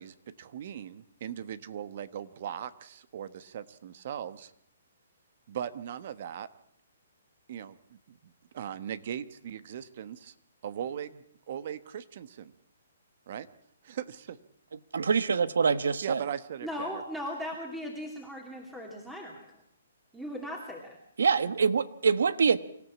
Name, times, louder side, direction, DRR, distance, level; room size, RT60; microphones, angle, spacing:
voice 1, 0.0-4.5 5.5-6.5 7.5-7.8 8.2-10.3 10.6-12.5 13.3-13.5 13.8-14.4 16.0-16.9, right 9 dB, 50° right, 1.2 m, -39 dB
voice 2, 14.9-16.2 21.2-22.6, right 5 dB, 80° right, 1.2 m, -25 dB
voice 3, 16.6-19.5 20.1-21.0, equal, 5° right, 2.7 m, -38 dB
25.5 x 14.5 x 8.5 m
hypercardioid pair, 150°, 0 cm